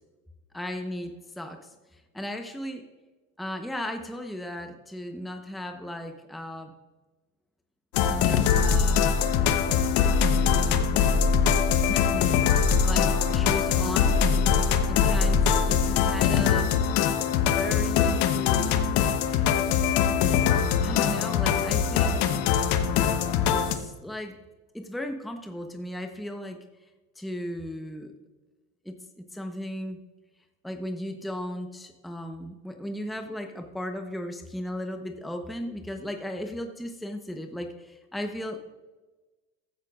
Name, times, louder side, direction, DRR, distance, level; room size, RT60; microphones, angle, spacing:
voice 1, 0.5-2.8 3.4-6.7 8.0-9.1 10.5-11.3 11.9-14.2 14.9-16.7 17.5-19.4 20.8-22.4 23.5-24.3 24.7-26.6 27.2-28.1 28.8-30.0 30.6-38.6, left 1 dB, ahead, 5 dB, 1.0 m, -36 dB
sound 1, 7.9-23.8, left 7 dB, 65° left, 1.1 m, -22 dB
15.0 x 10.0 x 2.5 m, 1.2 s
hypercardioid pair, 80°, 41 cm